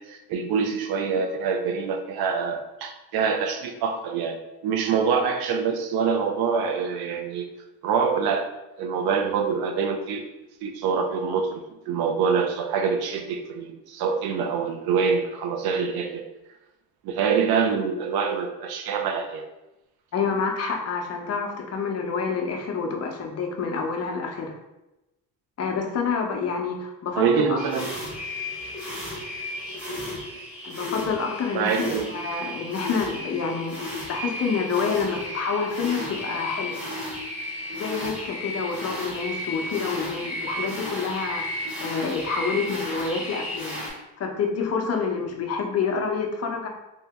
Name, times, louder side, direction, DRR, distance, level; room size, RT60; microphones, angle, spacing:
voice 1, 0.0-7.5 7.8-8.4 8.8-10.3 10.6-16.2 17.0-19.4 27.2-27.9 29.7-29.8 31.5-32.1, right 6 dB, 75° right, 5 dB, 0.6 m, -25 dB
voice 2, 20.1-24.5 25.6-27.6 30.6-36.8 37.7-43.8 44.2-46.7, left 5 dB, 40° left, 2 dB, 0.7 m, -28 dB
sound 1, 27.6-43.9, left 1 dB, 5° right, 1.3 m, -34 dB
2.8 x 2.7 x 3.4 m, 0.97 s
cardioid pair, 110°, 38 cm